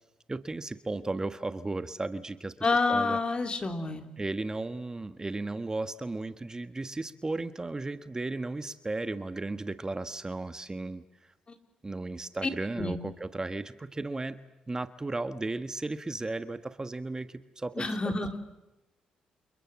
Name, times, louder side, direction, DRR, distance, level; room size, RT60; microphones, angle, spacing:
voice 1, 0.3-2.5 2.9-3.2 4.2-11.0 11.8-17.8, right 2 dB, 25° right, 11 dB, 1.3 m, -35 dB
voice 2, 2.6-4.1 11.5-11.6 12.4-12.5 12.8-13.0 17.8-18.4, left 3 dB, 40° left, 6 dB, 3.6 m, -28 dB
29.0 x 28.0 x 7.4 m, 0.99 s
hypercardioid pair, 50°, 3 cm